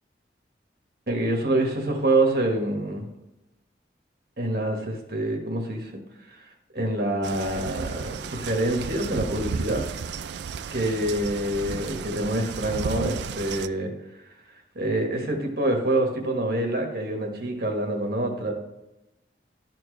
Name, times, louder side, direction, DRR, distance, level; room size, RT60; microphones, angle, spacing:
voice 1, 1.1-3.0 4.4-6.0 6.3-6.4 6.7-9.8 10.7-13.9 14.7-18.5, right 1 dB, 55° right, 2 dB, 1.4 m, -26 dB
sound 1, 7.2-13.7, right 6 dB, 75° right, 0.3 m, -33 dB
12.0 x 4.5 x 3.2 m, 0.95 s
head